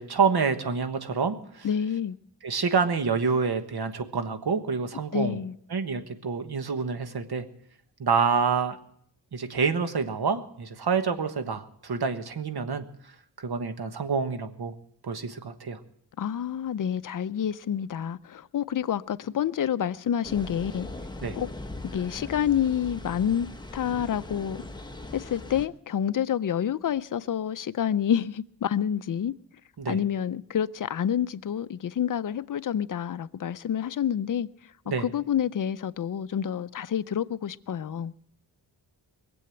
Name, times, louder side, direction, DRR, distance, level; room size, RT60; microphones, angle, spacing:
voice 1, 0.0-1.7 2.4-5.4 5.7-7.4 8.0-8.8 9.3-12.8 13.4-14.7 15.0-15.8 21.2-21.4 29.8-30.0 34.9-35.1, right 5 dB, 65° right, 1.4 m, -27 dB
voice 2, 1.6-2.2 5.1-5.5 16.2-20.9 21.4-21.5 21.9-23.5 23.7-24.6 25.1-29.3 29.9-34.5 35.0-38.1, left 9 dB, 50° left, 0.5 m, -28 dB
sound 1, 20.2-25.7, left 2 dB, 10° left, 0.9 m, -40 dB
21.5 x 7.8 x 7.8 m
wide cardioid pair, 135°, 42 cm